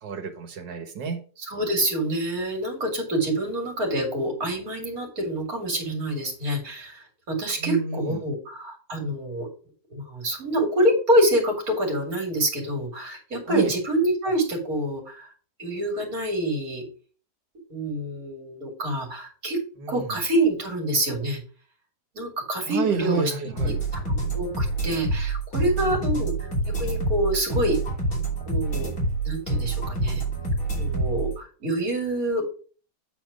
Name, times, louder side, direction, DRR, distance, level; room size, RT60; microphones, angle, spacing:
voice 1, 0.0-1.2 7.6-8.2 13.5-13.7 19.8-20.1 22.7-23.8 25.8-26.1, right 5 dB, 85° right, 7 dB, 2.0 m, -30 dB
voice 2, 1.4-9.5 9.9-15.3 15.6-16.8 17.7-19.6 19.9-21.4 22.1-26.5 26.8-27.8 28.5-28.9 29.2-30.2 30.8-32.4, right 1 dB, 55° right, 0 dB, 3.0 m, -26 dB
sound 1, 23.6-31.3, right 2 dB, 50° left, 3.6 m, -27 dB
9.0 x 4.3 x 5.0 m, 0.39 s
omnidirectional pair, 1.9 m